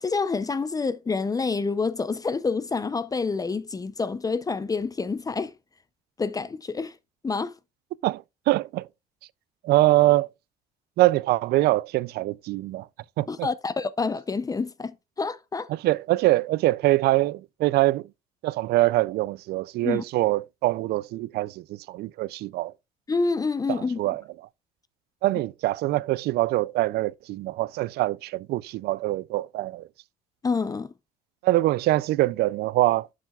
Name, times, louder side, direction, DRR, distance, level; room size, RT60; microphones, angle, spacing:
voice 1, 0.0-5.5 6.2-7.0 7.2-7.6 13.3-15.7 19.8-20.0 23.1-24.0 30.4-30.9, left 4 dB, 20° left, 0.5 m, -27 dB
voice 2, 8.0-8.9 9.6-10.3 11.0-12.9 13.2-13.5 15.7-18.1 18.4-22.7 23.7-24.2 25.2-29.9 31.4-33.1, right 17 dB, 70° right, 0.4 m, -24 dB
12.0 x 7.3 x 2.3 m
cardioid pair, 110°, 17 cm